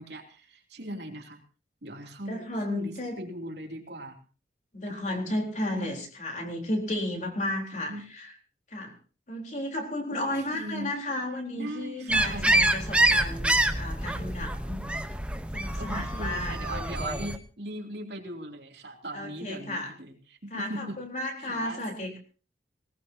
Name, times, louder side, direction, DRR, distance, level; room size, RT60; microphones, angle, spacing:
voice 1, 0.0-1.4 1.8-4.2 4.9-5.3 5.7-5.9 7.7-8.1 10.1-10.9 11.5-12.5 15.8-21.0 21.4-21.8, right 1 dB, 70° right, 2 dB, 3.1 m, -39 dB
voice 2, 2.3-3.2 4.7-8.3 8.7-8.9 9.3-14.9 15.5-16.9 19.1-19.9 20.5-22.2, left 1 dB, 40° left, 1 dB, 4.1 m, -33 dB
sound 1, 12.1-17.4, right 1 dB, 5° right, 1.0 m, -26 dB
19.5 x 19.0 x 2.9 m, 0.37 s
head